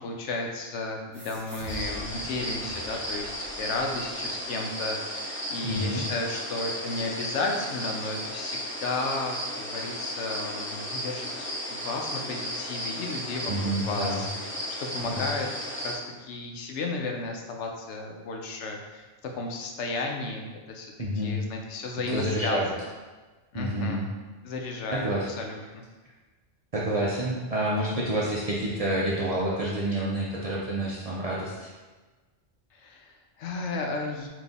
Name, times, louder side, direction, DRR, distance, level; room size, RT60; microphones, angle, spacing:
voice 1, 0.0-14.3 14.8-15.5 15.8-22.9 23.5-24.1 24.4-25.8 32.7-34.3, left 3 dB, 75° left, 1 dB, 0.9 m, -33 dB
sound 1, 1.1-4.2, equal, 15° right, 1.1 m, -44 dB
sound 2, 1.7-15.9, equal, 20° left, 0.4 m, -34 dB
voice 2, 5.6-6.0 13.5-14.3 15.0-15.3 21.0-21.4 22.1-22.7 23.5-24.1 24.9-25.3 26.7-31.7, right 1 dB, 45° right, -6 dB, 0.5 m, -28 dB
4.0 x 2.7 x 3.5 m, 1.3 s
omnidirectional pair, 1.2 m